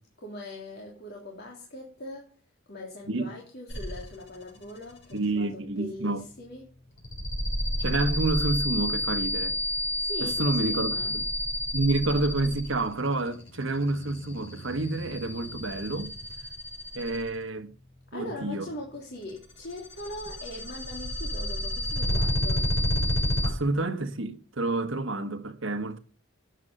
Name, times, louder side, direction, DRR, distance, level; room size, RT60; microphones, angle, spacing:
voice 1, 0.2-2.3 2.7-6.7 10.0-11.2 18.1-22.7, left 1 dB, 50° left, 3.1 m, -41 dB
sound 1, 3.7-4.3 4.6-5.1 7.0-17.4 19.4-23.5, left 1 dB, 70° left, 6.7 m, -30 dB
voice 2, 5.1-6.2 7.8-9.5 10.2-11.2 11.7-16.1 16.9-17.7 18.1-18.7 23.4-26.0, right 2 dB, 70° right, 1.4 m, -29 dB
12.0 x 8.8 x 6.7 m
head